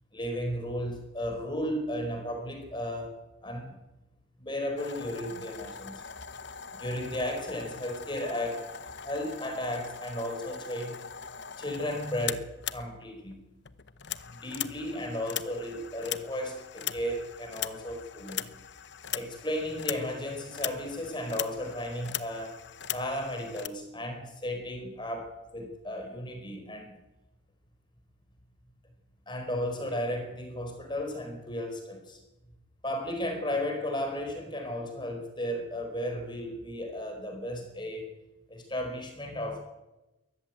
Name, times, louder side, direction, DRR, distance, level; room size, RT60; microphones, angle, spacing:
voice 1, 0.1-3.1 3.4-3.8 4.4-6.0 6.8-11.0 11.6-13.4 14.3-18.4 19.1-22.6 22.9-27.0 29.3-32.2 32.8-38.1 38.5-39.6, left 1 dB, 20° left, 4 dB, 4.7 m, -34 dB
sound 1, 4.8-13.4 13.7-23.7, left 10 dB, 55° left, 0.9 m, -40 dB
22.5 x 14.5 x 9.0 m, 1.0 s
head